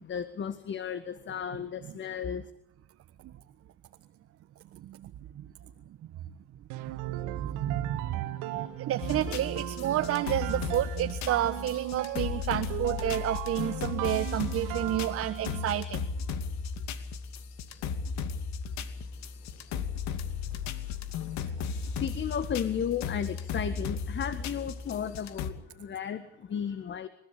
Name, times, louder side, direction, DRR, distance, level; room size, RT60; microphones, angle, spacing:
voice 1, 0.0-2.5 21.7-27.1, left 8 dB, 35° left, 13 dB, 1.7 m, -34 dB
voice 2, 4.7-5.5 6.7-16.1, right 12 dB, 45° right, 10 dB, 1.4 m, -31 dB
sound 1, 6.7-15.9, right 15 dB, 60° right, 1.9 m, -37 dB
sound 2, 9.0-25.5, left 6 dB, 55° left, 2.7 m, -35 dB
29.0 x 15.5 x 8.5 m, 0.75 s
hypercardioid pair, 80°, 33 cm